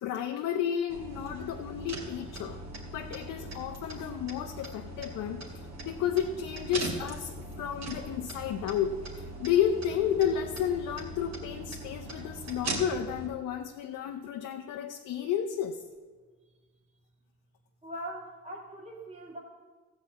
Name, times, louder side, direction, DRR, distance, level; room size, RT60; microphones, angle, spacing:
voice 1, 0.0-2.6 2.9-15.8, left 9 dB, 85° left, 4 dB, 0.7 m, -32 dB
sound 1, 0.9-13.3, right 2 dB, 60° right, 2.5 m, -40 dB
voice 2, 17.8-19.4, right 1 dB, 25° right, -2 dB, 2.0 m, -41 dB
14.5 x 5.0 x 8.3 m, 1.4 s
cardioid pair, 90°, 30 cm